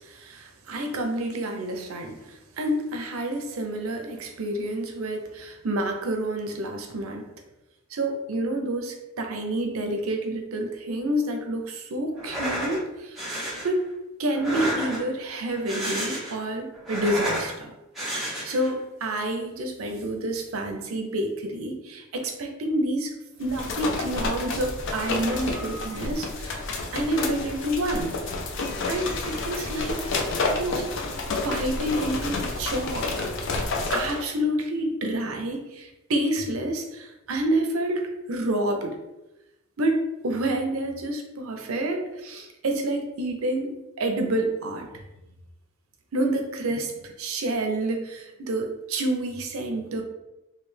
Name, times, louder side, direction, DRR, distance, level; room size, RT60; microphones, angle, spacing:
voice 1, 0.0-2.2 2.6-7.3 7.9-13.2 13.6-13.8 14.2-17.7 18.4-23.1 23.4-26.6 26.9-28.1 28.9-30.0 30.4-30.8 31.4-33.3 33.9-38.0 38.3-38.9 39.8-44.9 46.1-46.9 47.2-50.0, right 1 dB, 85° right, 4 dB, 0.6 m, -28 dB
sound 1, 12.2-12.8 13.2-13.7 14.3-15.2 15.6-16.4 16.7-17.5 17.9-18.7, right 1 dB, ahead, 0.9 m, -31 dB
sound 2, 23.4-34.2, left 3 dB, 60° left, 0.5 m, -30 dB
3.2 x 2.4 x 3.2 m, 0.96 s
head